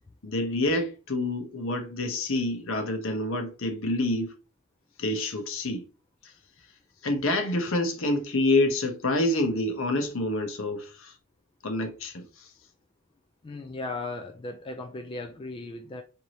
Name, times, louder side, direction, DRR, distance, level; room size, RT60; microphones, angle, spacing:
voice 1, 0.2-4.3 5.0-5.8 7.0-11.1 11.6-12.5, left 2 dB, 60° left, 0.9 m, -27 dB
voice 2, 13.4-16.0, left 2 dB, 25° left, 0.3 m, -37 dB
4.6 x 2.7 x 2.9 m
head